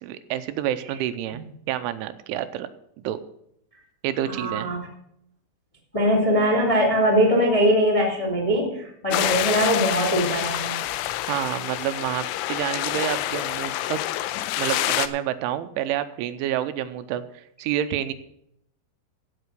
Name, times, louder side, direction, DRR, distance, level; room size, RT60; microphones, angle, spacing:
voice 1, 0.0-1.4 1.7-2.7 3.0-3.2 4.0-4.7 11.3-14.0 14.6-18.1, right 11 dB, 85° right, 10 dB, 3.1 m, -28 dB
voice 2, 4.3-4.9 5.9-10.7, equal, 15° left, 0 dB, 1.1 m, -21 dB
sound 1, 9.1-15.1, left 14 dB, 85° left, 2.8 m, -27 dB
15.5 x 5.9 x 6.6 m, 0.74 s
omnidirectional pair, 5.5 m